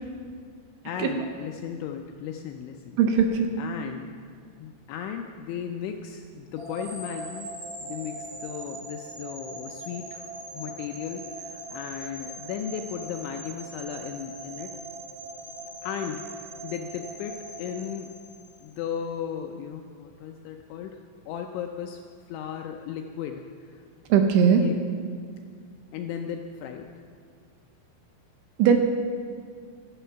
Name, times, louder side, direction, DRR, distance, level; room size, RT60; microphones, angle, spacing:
voice 1, 0.8-3.0 3.6-4.1 4.6-7.5 7.8-10.3 10.5-14.7 15.8-18.1 18.6-21.0 21.3-22.0 22.3-23.8 24.6-24.8 25.9-26.9, left 8 dB, 80° left, 4 dB, 2.7 m, -36 dB
voice 2, 3.0-3.5 24.1-24.6 28.6-28.8, right 7 dB, 80° right, 5 dB, 3.0 m, -19 dB
sound 1, 6.6-18.7, right 2 dB, 40° right, 5.9 m, -40 dB
15.0 x 12.0 x 5.7 m, 2.1 s
omnidirectional pair, 6.0 m